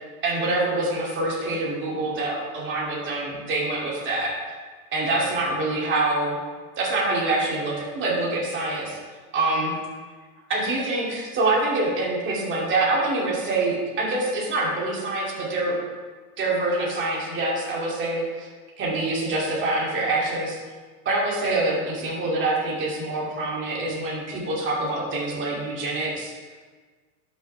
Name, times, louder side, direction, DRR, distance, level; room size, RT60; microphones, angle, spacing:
voice 1, 0.2-4.3 4.9-6.4 6.8-8.9 9.3-9.7 10.5-15.7 16.4-18.5 18.8-20.6 21.0-26.3, right 2 dB, 25° right, -4 dB, 2.7 m, -25 dB
12.0 x 6.7 x 3.4 m, 1.4 s
supercardioid pair, 135°, 43 cm